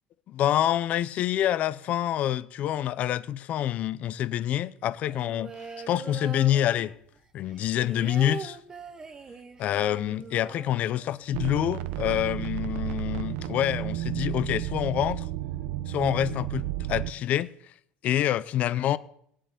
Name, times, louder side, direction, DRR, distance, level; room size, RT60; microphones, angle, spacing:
voice 1, 0.3-5.5 5.9-6.9 7.3-8.6 9.6-15.3 15.9-17.5 18.0-19.0, left 12 dB, 40° left, 0.6 m, -27 dB
sound 1, 5.0-7.2 7.5-11.4 11.7-11.8 12.1-12.6, right 4 dB, 15° right, 1.0 m, -41 dB
sound 2, 11.3-17.1, right 14 dB, 65° right, 1.0 m, -32 dB
19.0 x 7.6 x 9.7 m
cardioid pair, 165°, 4 cm